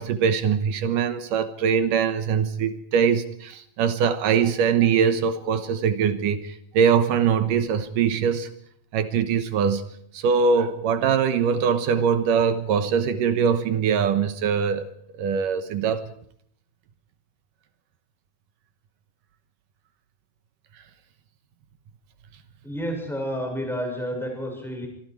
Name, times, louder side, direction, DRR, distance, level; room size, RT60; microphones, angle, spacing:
voice 1, 0.0-8.5 8.9-9.9 10.1-14.9 15.2-16.1, right 7 dB, 70° right, 2.7 m, -22 dB
voice 2, 22.6-24.9, equal, ahead, 6.5 m, -30 dB
25.5 x 24.5 x 4.7 m
omnidirectional pair, 4.1 m